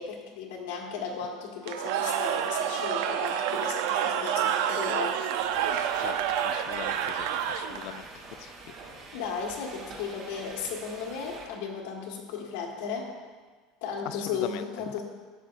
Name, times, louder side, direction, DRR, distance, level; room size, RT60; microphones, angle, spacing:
voice 1, 0.0-5.2 9.1-13.1 13.8-15.0, left 6 dB, 90° left, -1 dB, 1.6 m, -35 dB
Cheering / Crowd, 1.6-8.0, right 9 dB, 75° right, 0.5 m, -28 dB
sound 1, 5.3-11.5, right 3 dB, 40° right, 1.3 m, -45 dB
voice 2, 6.4-8.1 8.4-8.5 14.1-14.6, left 14 dB, 55° left, 13 dB, 0.3 m, -40 dB
11.5 x 7.6 x 2.5 m, 1.4 s
cardioid pair, 160°, 0 cm